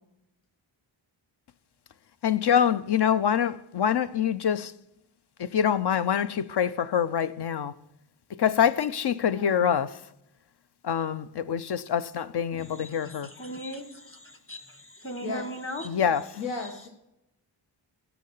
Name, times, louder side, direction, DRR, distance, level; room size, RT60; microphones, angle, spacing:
voice 1, 2.2-4.7 5.4-7.7 8.3-9.9 10.8-13.3 15.8-16.2, left 8 dB, 60° left, 0.6 m, -25 dB
voice 2, 9.2-9.7 15.2-15.4 16.4-16.9, left 4 dB, 85° left, 1.5 m, -35 dB
voice 3, 12.6-15.9 16.6-16.7, equal, 30° left, 1.6 m, -39 dB
15.5 x 5.8 x 5.5 m
wide cardioid pair, 100°, 45 cm